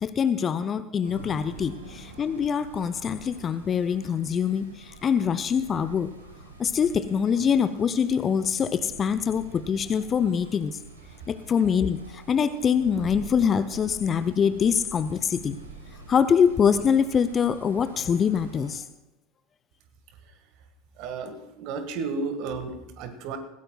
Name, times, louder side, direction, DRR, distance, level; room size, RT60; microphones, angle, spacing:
voice 1, 0.0-6.1 6.6-10.8 11.3-15.6 16.1-18.8, left 7 dB, 30° left, 13 dB, 0.7 m, -24 dB
sound 1, 1.0-18.8, right 2 dB, 80° right, 2.0 m, -46 dB
voice 2, 21.0-23.4, right 4 dB, 50° right, 8 dB, 1.7 m, -33 dB
20.5 x 17.0 x 2.3 m, 1.0 s
figure-of-eight pair, 75°, 0 cm